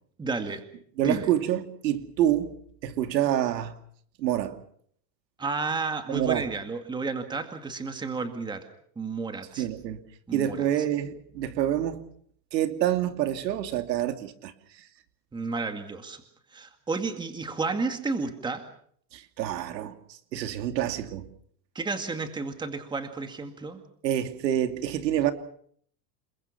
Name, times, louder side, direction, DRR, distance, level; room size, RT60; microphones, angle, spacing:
voice 1, 0.2-0.6 1.0-1.3 5.4-8.7 9.0-9.7 10.3-10.6 15.3-16.2 16.5-18.7 21.7-23.8, right 4 dB, 10° right, 2.1 m, -32 dB
voice 2, 1.0-2.5 2.8-3.7 4.2-4.6 6.1-6.4 9.6-10.0 10.3-12.0 12.5-14.5 19.1-21.3 24.0-25.3, right 11 dB, 90° right, 2.8 m, -27 dB
29.5 x 21.5 x 5.9 m
supercardioid pair, 155°, 49 cm